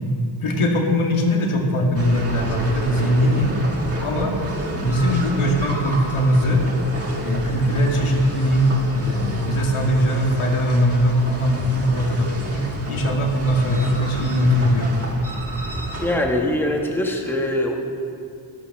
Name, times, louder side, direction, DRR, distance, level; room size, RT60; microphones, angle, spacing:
voice 1, 0.4-3.5 4.0-4.3 4.7-6.6 7.2-15.0, equal, 85° left, 0 dB, 2.4 m, -20 dB
sound 1, 1.9-16.2, right 1 dB, 30° right, 2.0 m, -31 dB
voice 2, 16.0-17.8, left 1 dB, 5° left, 1 dB, 1.4 m, -22 dB
13.0 x 13.0 x 6.1 m, 2.5 s
wide cardioid pair, 135°, 49 cm